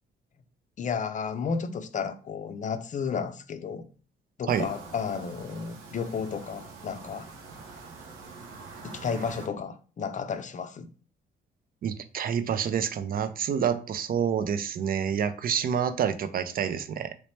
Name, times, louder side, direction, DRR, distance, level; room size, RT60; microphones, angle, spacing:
voice 1, 0.8-3.9 4.4-7.3 8.8-10.9, left 6 dB, 40° left, 0.5 m, -32 dB
sound 1, 4.5-9.5, right 4 dB, 85° right, 0.7 m, -45 dB
voice 2, 11.8-17.1, right 8 dB, 50° right, 0.4 m, -28 dB
3.1 x 2.9 x 3.2 m
cardioid pair, 90°, 20 cm